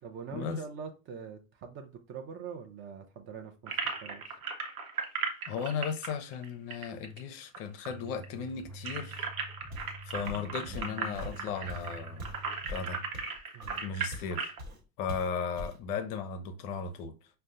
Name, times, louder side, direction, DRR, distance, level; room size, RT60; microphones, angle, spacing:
voice 1, 0.0-4.2 13.5-13.9, right 6 dB, 30° right, 0.5 m, -44 dB
sound 1, 3.7-7.6 7.8-7.9 8.2-14.6, right 5 dB, 75° right, 0.9 m, -37 dB
voice 2, 5.5-9.3 10.0-12.3 12.7-13.0 13.8-14.5 15.0-17.1, left 6 dB, 45° left, 0.6 m, -36 dB
sound 2, 7.9-13.1, right 1 dB, 5° left, 0.7 m, -47 dB
Walk footsteps, 9.7-10.0 10.2-14.3 14.6-14.8 15.1-15.8, left 1 dB, 50° right, 1.2 m, -43 dB
5.2 x 2.1 x 2.5 m
figure-of-eight pair, 80°, 43 cm